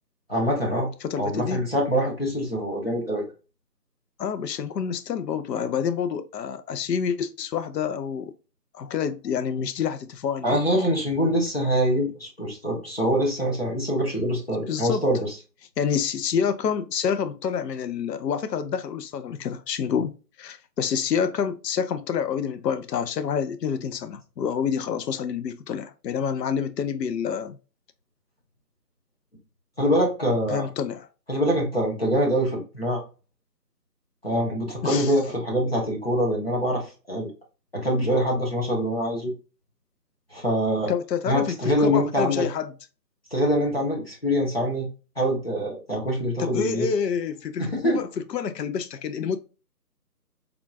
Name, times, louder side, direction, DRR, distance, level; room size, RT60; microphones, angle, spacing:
voice 1, 0.3-0.9 1.2-3.2 10.4-15.3 29.8-30.7 31.3-33.0 34.2-37.3 37.7-39.3 40.3-40.9 41.3-42.4 43.3-44.9 45.2-46.9 47.6-48.0, equal, 35° left, 0.8 m, -24 dB
voice 2, 1.0-1.6 4.2-8.3 8.7-10.6 14.7-15.0 15.8-20.1 20.4-27.6 30.5-31.1 34.8-35.1 40.9-42.7 46.4-49.4, left 7 dB, 75° left, 0.5 m, -28 dB
3.6 x 2.3 x 2.5 m
figure-of-eight pair, 170°, 50 cm